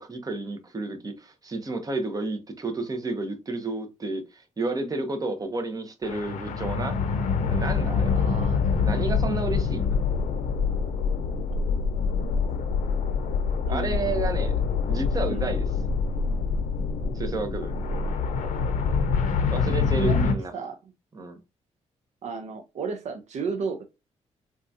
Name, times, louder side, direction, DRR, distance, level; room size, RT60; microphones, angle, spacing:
voice 1, 0.0-7.0 7.5-8.2 8.8-9.9 13.7-14.6 14.8-15.6 17.1-17.7 19.5-20.5 21.1-21.4, right 2 dB, 30° right, 0.8 m, -31 dB
sound 1, 6.0-20.3, left 5 dB, 85° left, 0.6 m, -25 dB
voice 2, 8.1-9.1 13.7-14.2 15.3-15.5 20.0-20.8 22.2-23.9, right 5 dB, 65° right, 0.5 m, -34 dB
3.7 x 2.3 x 2.6 m
cardioid pair, 80°, 13 cm